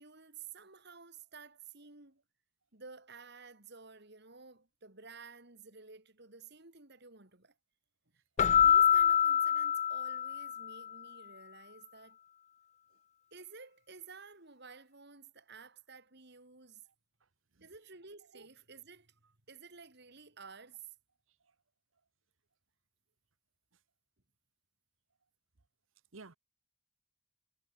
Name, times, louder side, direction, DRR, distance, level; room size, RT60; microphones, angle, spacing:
voice 1, 0.0-2.2 2.7-7.5 8.1-12.2 13.3-16.9 17.6-19.1 19.5-20.9, right 5 dB, 55° right, 3.1 m, -53 dB
Keyboard (musical), 8.4-10.8, left 9 dB, 35° left, 0.4 m, -26 dB
voice 2, 16.9-17.0 17.6-17.7 18.3-18.5 21.4-21.5 26.1-26.4, right 3 dB, 70° right, 1.2 m, -53 dB
head